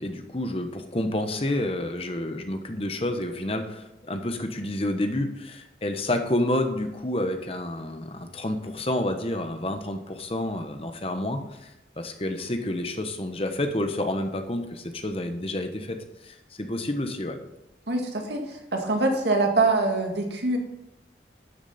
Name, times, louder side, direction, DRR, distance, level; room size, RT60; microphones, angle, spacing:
voice 1, 0.0-17.4, left 1 dB, 35° left, 6 dB, 1.0 m, -29 dB
voice 2, 17.9-20.6, right 3 dB, 80° right, 2 dB, 1.9 m, -24 dB
12.5 x 6.8 x 4.2 m, 0.88 s
head